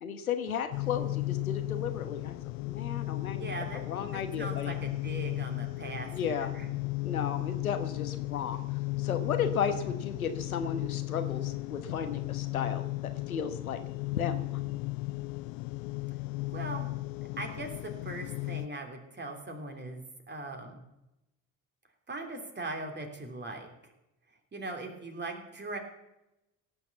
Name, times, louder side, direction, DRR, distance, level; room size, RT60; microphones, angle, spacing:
voice 1, 0.0-2.4 2.6-4.7 6.1-6.5 7.0-8.6 9.0-14.6, left 7 dB, 85° left, 8 dB, 1.2 m, -34 dB
sound 1, 0.7-18.7, left 21 dB, 55° left, 0.6 m, -35 dB
voice 2, 3.4-3.8 4.1-6.7 9.7-9.9 16.5-16.9 17.4-20.8 22.1-23.7 24.5-25.8, right 2 dB, 25° right, 4 dB, 3.3 m, -40 dB
17.0 x 7.1 x 7.1 m, 0.92 s
figure-of-eight pair, 60°, 42 cm